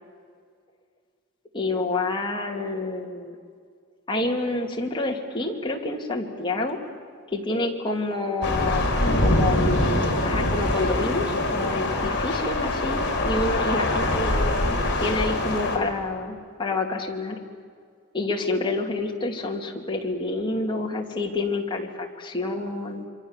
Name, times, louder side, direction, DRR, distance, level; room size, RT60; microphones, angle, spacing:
voice 1, 1.5-3.4 4.1-6.8 7.3-8.8 9.2-14.6 15.0-17.4 18.1-23.0, left 2 dB, 20° left, 0 dB, 2.6 m, -28 dB
Thunder / Rain, 8.4-15.8, left 1 dB, 55° left, 4.8 m, -24 dB
27.5 x 24.5 x 7.4 m, 2.1 s
head